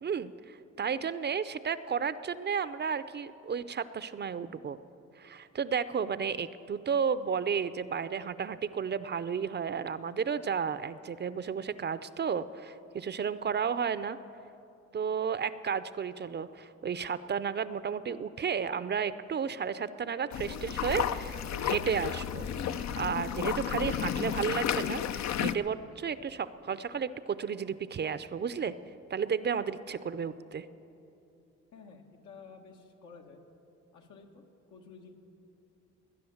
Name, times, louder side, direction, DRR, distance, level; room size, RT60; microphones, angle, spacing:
voice 1, 0.0-4.8 5.2-14.2 14.9-22.5 22.7-28.7 29.1-30.7, right 6 dB, 35° right, 14 dB, 0.5 m, -33 dB
sound 1, 20.3-25.5, left 9 dB, 65° left, 0.6 m, -32 dB
voice 2, 31.7-33.5 33.9-35.1, left 5 dB, 80° left, 2 dB, 1.9 m, -52 dB
19.5 x 10.0 x 7.1 m, 2.9 s
cardioid pair, 90°, 30 cm